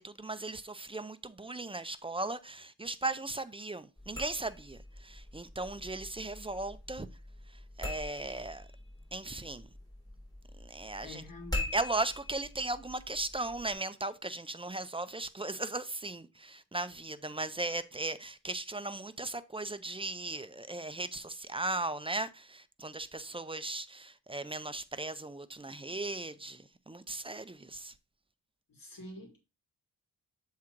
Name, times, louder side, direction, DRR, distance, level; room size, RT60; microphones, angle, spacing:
voice 1, 0.0-7.1 7.8-8.7 9.1-9.7 10.6-11.2 11.7-27.9, right 2 dB, 15° right, 0.4 m, -37 dB
sound 1, 4.0-13.7, left 2 dB, 10° left, 3.1 m, -43 dB
voice 2, 11.0-11.7 28.7-29.4, left 2 dB, 55° left, 2.3 m, -47 dB
7.2 x 3.8 x 4.4 m
wide cardioid pair, 95°, 40 cm